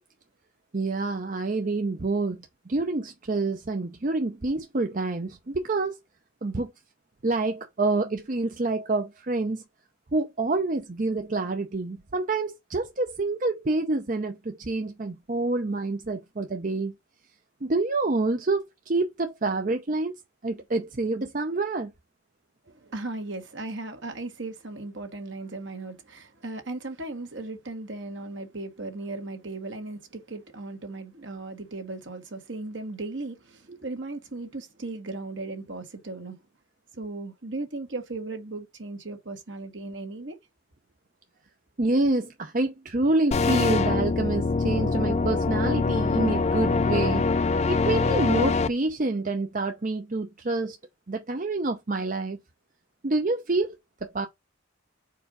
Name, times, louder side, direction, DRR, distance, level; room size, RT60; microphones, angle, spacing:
voice 1, 0.7-2.4 2.7-6.0 6.4-6.7 7.2-9.6 10.1-16.9 17.6-20.1 20.4-21.9 33.7-33.8 41.8-47.3 47.7-50.8 51.1-52.4 53.0-54.3, right 2 dB, 40° right, 0.6 m, -27 dB
voice 2, 22.7-36.4 37.0-40.4, right 2 dB, 60° right, 1.6 m, -37 dB
sound 1, 43.3-48.7, left 3 dB, 30° left, 0.3 m, -24 dB
4.7 x 4.4 x 5.0 m
head